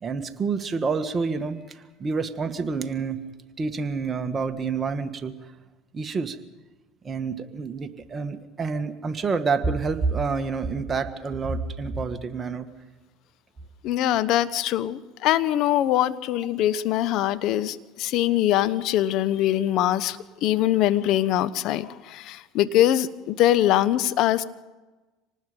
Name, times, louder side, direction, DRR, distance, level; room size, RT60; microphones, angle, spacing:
voice 1, 0.0-3.2 3.6-5.3 5.9-6.4 7.0-12.7, right 4 dB, 30° right, 7 dB, 1.9 m, -28 dB
voice 2, 13.8-24.4, left 13 dB, 60° left, 14 dB, 1.0 m, -23 dB
26.5 x 19.0 x 5.4 m, 1.2 s
supercardioid pair, 90°, 0 cm